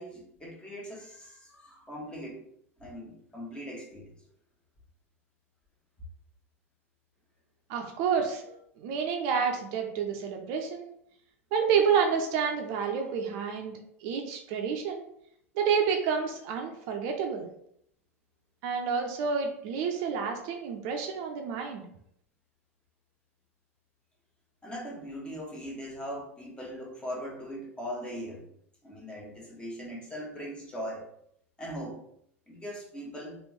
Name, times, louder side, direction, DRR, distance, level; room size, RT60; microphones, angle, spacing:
voice 1, 0.0-2.4 2.8-4.1 24.6-28.5 28.8-31.0 31.6-32.0 32.5-33.4, equal, 15° left, -2 dB, 1.2 m, -40 dB
voice 2, 7.7-10.9 11.5-13.7 14.0-15.0 15.5-17.4 18.6-21.8, right 6 dB, 55° right, 3 dB, 0.6 m, -29 dB
3.3 x 2.5 x 3.1 m, 0.70 s
hypercardioid pair, 85°, 7 cm